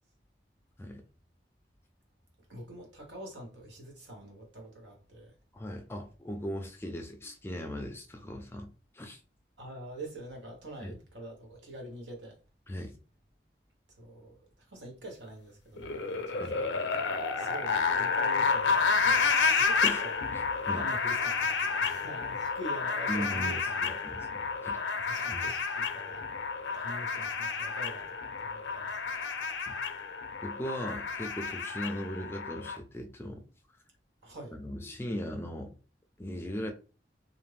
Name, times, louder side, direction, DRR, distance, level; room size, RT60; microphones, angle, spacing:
voice 1, 2.5-5.3 9.6-12.4 13.9-20.1 20.8-24.0 24.9-26.4 26.7-29.2 34.2-34.5, right 1 dB, 85° right, 1.1 m, -45 dB
voice 2, 5.5-9.2 10.8-10.9 12.7-12.9 16.4-16.6 19.8-20.1 20.7-20.9 23.1-24.3 24.6-24.8 25.3-25.5 29.7-29.8 30.4-33.4 34.6-35.7 36.2-36.7, equal, 15° left, 0.4 m, -38 dB
sound 1, 15.8-32.8, left 5 dB, 85° left, 0.5 m, -30 dB
2.5 x 2.5 x 3.2 m
head